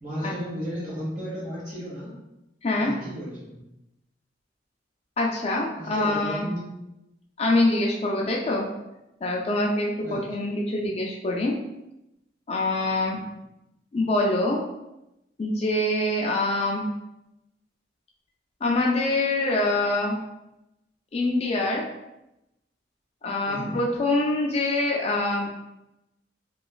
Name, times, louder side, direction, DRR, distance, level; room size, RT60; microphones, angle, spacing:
voice 1, 0.0-2.1 2.8-3.6 5.8-6.7 10.0-10.2 23.5-23.8, equal, 45° right, -7 dB, 1.3 m, -34 dB
voice 2, 2.6-2.9 5.2-6.4 7.4-8.6 9.2-11.5 12.5-13.2 13.9-14.6 15.4-16.8 18.6-20.2 21.1-21.8 23.2-25.5, left 2 dB, 35° left, -1 dB, 0.3 m, -24 dB
3.0 x 2.2 x 2.4 m, 0.90 s
head